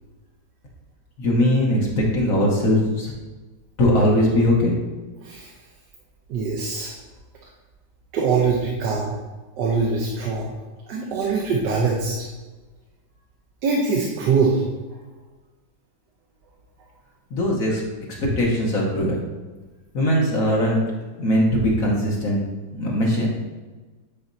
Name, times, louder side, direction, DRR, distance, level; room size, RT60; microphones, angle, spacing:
voice 1, 1.2-3.1 3.8-4.8 17.3-17.8 18.2-19.2 19.9-20.8 21.2-22.4 22.7-23.3, equal, 55° left, -3 dB, 1.4 m, -20 dB
voice 2, 5.2-5.5 6.3-6.9 8.1-9.1 9.6-10.5 10.9-12.2 13.6-14.6, right 4 dB, 80° right, -2 dB, 1.4 m, -22 dB
9.2 x 4.2 x 2.6 m, 1.3 s
omnidirectional pair, 1.9 m